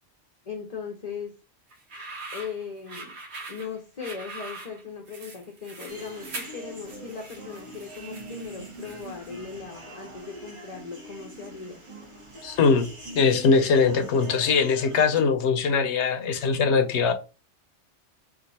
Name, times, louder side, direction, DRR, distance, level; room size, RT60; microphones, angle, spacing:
voice 1, 0.5-1.3 2.3-3.1 3.5-11.8, left 6 dB, 40° left, 0.7 m, -38 dB
sound 1, 1.7-9.3, right 3 dB, 65° right, 1.2 m, -42 dB
sound 2, 5.9-15.2, right 1 dB, 25° right, 1.2 m, -43 dB
voice 2, 12.4-12.9 13.2-17.1, left 5 dB, 75° left, 1.0 m, -21 dB
4.5 x 2.6 x 4.0 m
omnidirectional pair, 1.2 m